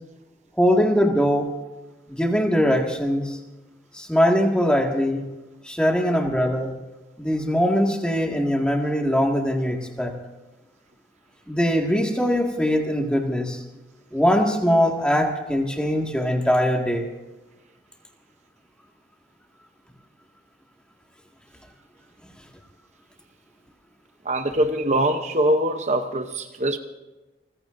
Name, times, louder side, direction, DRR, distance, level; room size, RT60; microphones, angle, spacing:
voice 1, 0.6-1.5 2.1-3.4 3.9-5.2 5.7-6.7 7.2-10.1 11.5-13.6 14.1-17.1, equal, 5° left, 1 dB, 1.9 m, -21 dB
voice 2, 24.2-26.8, right 1 dB, 40° right, 6 dB, 0.8 m, -23 dB
29.5 x 15.5 x 2.6 m, 1.1 s
head